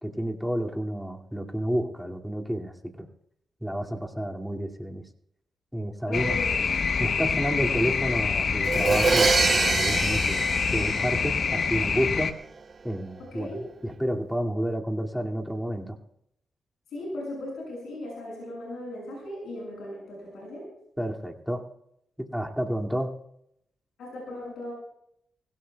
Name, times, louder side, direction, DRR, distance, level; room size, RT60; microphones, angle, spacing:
voice 1, 0.0-3.1 3.6-5.0 5.7-6.4 7.0-10.5 10.7-12.4 12.8-13.5 13.8-16.0 21.0-21.7 22.2-23.1, equal, ahead, 1 dB, 2.3 m, -30 dB
voice 2, 6.1-6.6 7.0-7.7 13.2-13.6 16.9-20.7 24.0-24.7, left 1 dB, 85° left, -2 dB, 6.5 m, -37 dB
sound 1, 6.1-12.3, left 5 dB, 60° left, 0.8 m, -26 dB
Crash cymbal, 8.6-11.6, right 4 dB, 50° right, 0.7 m, -25 dB
24.5 x 16.5 x 2.3 m, 0.75 s
supercardioid pair, 55°, 0 cm